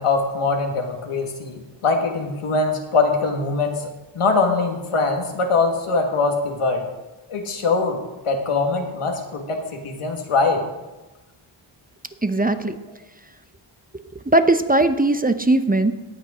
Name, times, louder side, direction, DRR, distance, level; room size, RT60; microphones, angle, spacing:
voice 1, 0.0-3.9 4.2-6.8 7.3-8.0 8.3-10.6, left 3 dB, 90° left, 3 dB, 1.8 m, -22 dB
voice 2, 12.2-12.8 14.3-15.9, right 2 dB, 15° right, 10 dB, 0.7 m, -19 dB
17.5 x 6.3 x 5.0 m, 1.1 s
cardioid pair, 55°, 50 cm